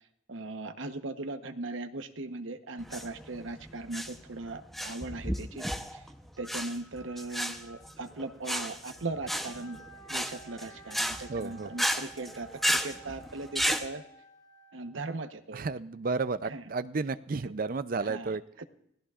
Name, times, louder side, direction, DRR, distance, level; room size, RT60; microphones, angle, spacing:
voice 1, 0.3-6.0 6.4-9.8 10.1-14.0 14.7-15.7 16.4-16.7 17.4-17.5 18.0-18.7, right 2 dB, 75° right, 8 dB, 1.0 m, -39 dB
sound 1, 2.8-13.9, equal, ahead, 0.8 m, -33 dB
Wind instrument woodwind instrument, 9.2-15.1, right 5 dB, 20° left, 1.2 m, -53 dB
voice 2, 11.3-11.7 15.5-18.4, right 4 dB, 45° right, 13 dB, 0.5 m, -32 dB
30.0 x 16.5 x 2.5 m, 0.75 s
head